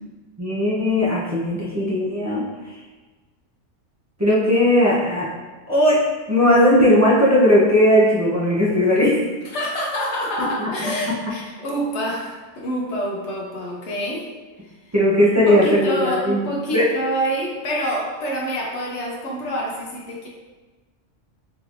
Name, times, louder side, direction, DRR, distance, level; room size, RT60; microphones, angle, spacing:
voice 1, 0.4-2.4 4.2-5.3 5.7-6.0 6.3-9.2 10.4-10.7 14.9-16.5 16.7-16.8, left 1 dB, 20° right, -8 dB, 0.4 m, -17 dB
voice 2, 9.4-14.3 14.6-14.9 15.3-20.3, equal, 65° left, -1 dB, 1.0 m, -27 dB
3.8 x 3.0 x 2.5 m, 1.3 s
omnidirectional pair, 1.3 m